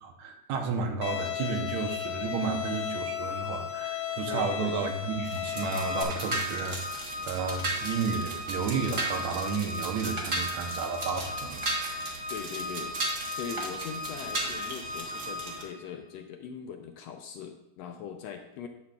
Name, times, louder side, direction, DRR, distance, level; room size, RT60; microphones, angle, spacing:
voice 1, 0.0-12.1, right 5 dB, 80° right, 4 dB, 2.1 m, -32 dB
Bowed string instrument, 1.0-6.0, left 10 dB, 60° left, 1.5 m, -34 dB
voice 2, 4.3-4.7 12.3-18.7, left 7 dB, 80° left, 5 dB, 1.6 m, -41 dB
sound 1, 5.2-15.6, right 2 dB, 55° right, 0.8 m, -36 dB
Organ, 5.5-15.9, left 1 dB, 30° right, 1.7 m, -38 dB
10.5 x 8.5 x 2.4 m, 0.88 s
omnidirectional pair, 3.4 m